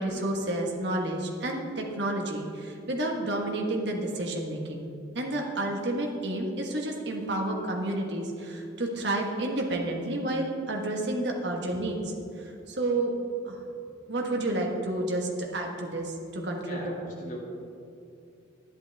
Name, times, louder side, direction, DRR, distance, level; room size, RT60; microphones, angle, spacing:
voice 1, 0.0-4.9 5.1-12.1 12.7-13.1 13.4-13.6 14.1-16.9, right 1 dB, 60° right, 1 dB, 1.4 m, -30 dB
voice 2, 16.6-17.4, equal, 40° left, -4 dB, 2.3 m, -40 dB
11.5 x 10.5 x 3.5 m, 2.5 s
head